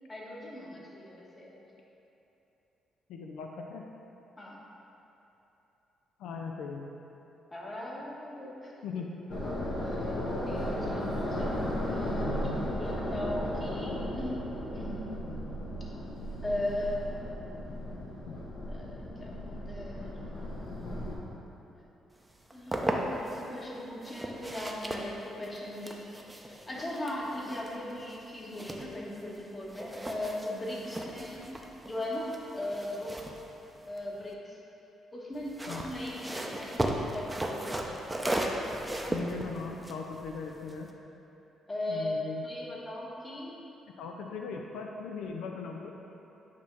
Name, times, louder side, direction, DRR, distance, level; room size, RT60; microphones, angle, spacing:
voice 1, 0.1-1.6 4.4-4.6 7.5-8.7 9.8-10.2 10.4-14.4 14.7-15.0 16.4-17.1 18.7-20.2 22.5-26.0 26.4-31.5 31.8-33.2 33.9-34.6 35.1-38.1 41.7-42.2 42.4-43.5, left 1 dB, 25° left, -4 dB, 1.1 m, -38 dB
voice 2, 3.1-3.9 6.2-6.9 8.8-9.2 18.3-18.4 35.7-35.9 39.1-40.9 41.9-42.5 44.0-45.9, left 5 dB, 85° left, 1 dB, 0.4 m, -39 dB
sound 1, 9.3-21.2, left 1 dB, 60° left, 1.2 m, -35 dB
sound 2, 22.3-23.4 24.0-29.4 29.7-34.3 35.3-40.9, right 1 dB, 10° right, 0.5 m, -36 dB
8.1 x 2.8 x 4.6 m, 3.0 s
cardioid pair, 90°, 0 cm